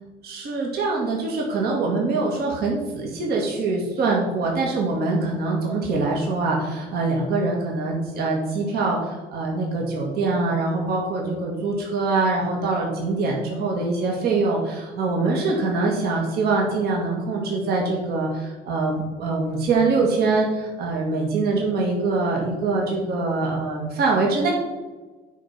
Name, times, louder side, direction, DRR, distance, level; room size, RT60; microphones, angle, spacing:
voice 1, 0.2-24.5, right 3 dB, 70° right, -2 dB, 2.1 m, -24 dB
9.9 x 4.5 x 5.8 m, 1.3 s
cardioid pair, 110°, 17 cm